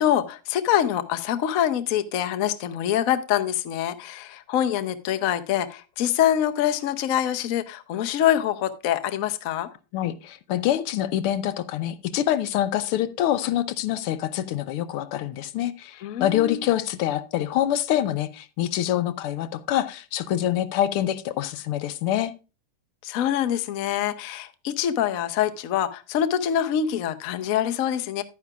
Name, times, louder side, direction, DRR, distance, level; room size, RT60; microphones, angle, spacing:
voice 1, 0.0-9.7 16.0-16.7 23.0-28.2, left 10 dB, 65° left, 0.8 m, -25 dB
voice 2, 9.9-22.3, left 12 dB, 90° left, 1.6 m, -25 dB
11.0 x 9.4 x 2.3 m
omnidirectional pair, 2.4 m